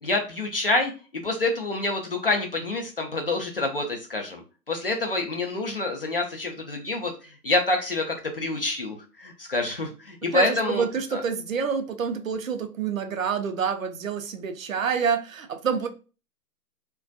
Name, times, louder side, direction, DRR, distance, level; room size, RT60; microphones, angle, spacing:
voice 1, 0.0-4.4 4.7-10.8 11.1-11.2, left 2 dB, 40° left, 0.4 m, -27 dB
voice 2, 10.3-15.9, right 6 dB, 60° right, 0.5 m, -27 dB
2.3 x 2.2 x 2.5 m
figure-of-eight pair, 140°, 47 cm